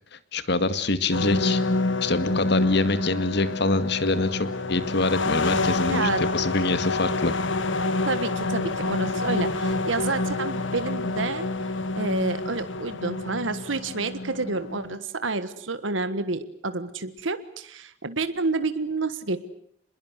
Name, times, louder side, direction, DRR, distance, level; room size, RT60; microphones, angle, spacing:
voice 1, 0.1-1.6 2.0-7.3, left 2 dB, 60° left, 12 dB, 2.1 m, -25 dB
sound 1, 1.1-15.0, left 2 dB, 80° left, 1.6 m, -27 dB
voice 2, 5.9-6.2 8.1-11.5 11.9-19.4, right 3 dB, 85° right, 11 dB, 1.5 m, -29 dB
27.0 x 21.5 x 8.1 m, 0.68 s
head